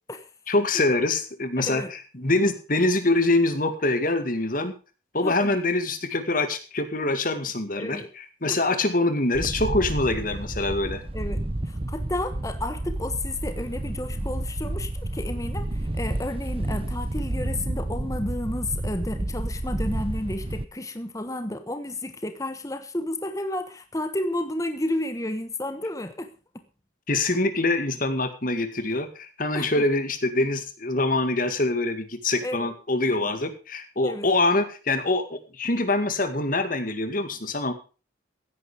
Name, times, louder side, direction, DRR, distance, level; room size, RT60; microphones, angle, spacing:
voice 1, 0.5-4.7 5.1-11.0 27.1-37.7, left 2 dB, 45° left, 9 dB, 2.2 m, -24 dB
voice 2, 1.6-1.9 5.2-5.6 7.7-8.1 8.5-8.6 11.1-11.4 11.6-26.3 29.5-29.8 32.4-32.7 34.0-34.3, left 1 dB, 15° left, 9 dB, 1.2 m, -32 dB
Wind, 9.3-20.6, right 1 dB, 30° right, 0.8 m, -30 dB
16.0 x 10.0 x 5.1 m, 0.35 s
head